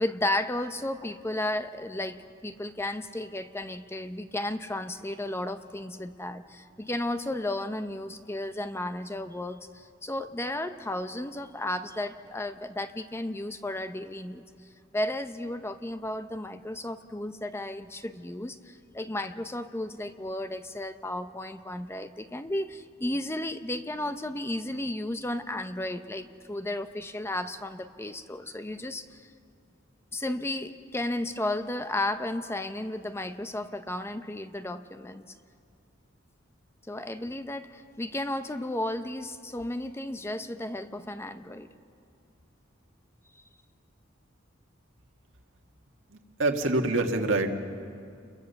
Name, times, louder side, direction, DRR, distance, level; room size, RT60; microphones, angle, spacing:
voice 1, 0.0-14.4 14.9-29.3 30.1-35.3 36.9-41.7, left 1 dB, 15° left, 9 dB, 0.7 m, -33 dB
voice 2, 46.1-47.5, right 2 dB, 70° right, 4 dB, 2.0 m, -26 dB
29.5 x 22.0 x 7.0 m, 2.4 s
head